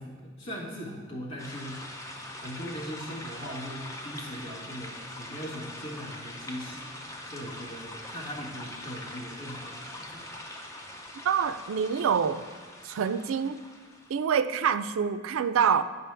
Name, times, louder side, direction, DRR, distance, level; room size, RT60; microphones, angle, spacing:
voice 1, 0.0-1.8 2.4-6.9 7.2-10.3, equal, 75° left, -5 dB, 1.8 m, -40 dB
sound 1, 1.4-14.2, left 1 dB, 15° left, 0.5 m, -43 dB
voice 2, 11.2-12.4 12.8-13.6 14.1-15.8, right 7 dB, 80° right, 12 dB, 0.3 m, -26 dB
9.6 x 5.1 x 3.4 m, 1.5 s
head